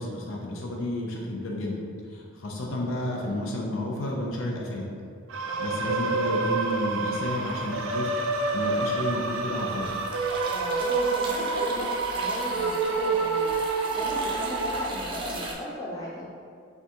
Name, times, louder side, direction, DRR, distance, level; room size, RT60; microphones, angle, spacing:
voice 1, 0.0-1.8 2.1-4.9 5.6-8.1 8.5-10.0, left 1 dB, 85° left, -1 dB, 0.6 m, -31 dB
sound 1, 5.3-14.9, right 3 dB, 80° right, 0.4 m, -28 dB
sound 2, 7.4-8.0 8.3-15.5, right 2 dB, 25° right, 0.5 m, -39 dB
voice 2, 10.5-13.5 13.9-16.3, equal, 15° left, -7 dB, 0.7 m, -36 dB
5.7 x 2.4 x 2.9 m, 2.3 s
head